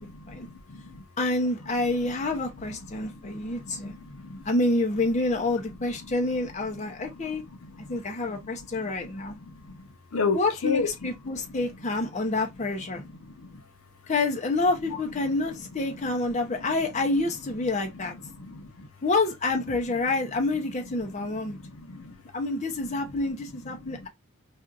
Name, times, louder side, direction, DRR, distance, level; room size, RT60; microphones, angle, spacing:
voice 1, 0.0-1.0 2.9-4.5 6.0-6.1 6.8-7.3 7.6-8.0 8.3-11.1 11.4-11.6 12.9-13.6 15.9-16.1 16.4-16.5 17.6-17.9 18.2-18.9 19.9-20.0 21.0-22.2 22.8-24.1, left 4 dB, 70° left, 0.7 m, -36 dB
voice 2, 1.2-3.9 4.4-7.4 7.9-9.4 10.3-13.0 14.1-18.1 19.0-21.6 22.3-24.1, left 2 dB, 30° left, 0.6 m, -28 dB
4.3 x 2.4 x 2.4 m
head